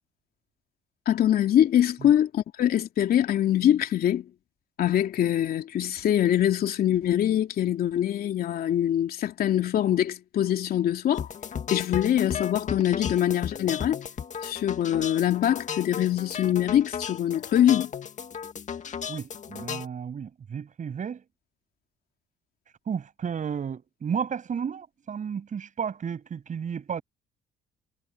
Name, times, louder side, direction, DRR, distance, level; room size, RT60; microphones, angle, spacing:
voice 1, 1.1-4.3 4.8-11.3 11.7-14.0 14.4-17.9, left 11 dB, 60° left, 2.9 m, -23 dB
sound 1, 11.1-19.9, left 7 dB, 45° left, 2.1 m, -35 dB
voice 2, 19.1-21.2 22.9-27.0, right 7 dB, 45° right, 7.9 m, -33 dB
supercardioid pair, 70°, 17 cm